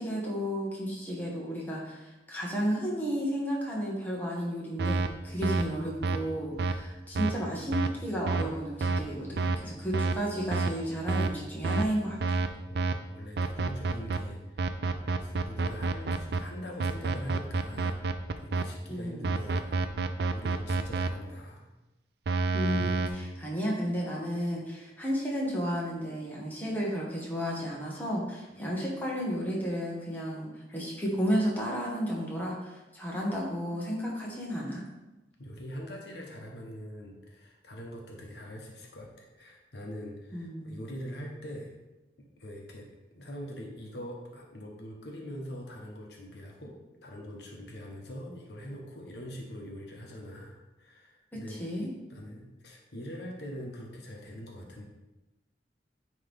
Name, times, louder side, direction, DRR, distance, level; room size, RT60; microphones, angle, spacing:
voice 1, 0.0-12.4 18.9-19.3 22.5-34.8 40.3-40.8 51.5-51.9, equal, 10° left, -4 dB, 1.3 m, -32 dB
sound 1, 4.8-5.1 5.4-5.6 6.0-6.2 6.6-6.7 7.2-7.3 7.7-7.9 8.3-8.4 8.8-9.0 9.4-9.6 9.9-10.1 10.5-10.7 11.1-11.3 11.6-11.9 12.2-12.5 12.8-12.9 13.4-14.2 14.6-16.4 16.8-18.6 19.2-21.1 22.3-23.1, right 3 dB, 65° right, 0.4 m, -28 dB
voice 2, 12.6-19.9 20.3-21.7 22.7-23.3 28.5-28.8 35.4-41.7 42.4-42.9 43.1-46.7 47.0-51.6 52.1-54.8, equal, 70° left, 0 dB, 1.0 m, -43 dB
9.5 x 3.2 x 3.4 m, 1.0 s
head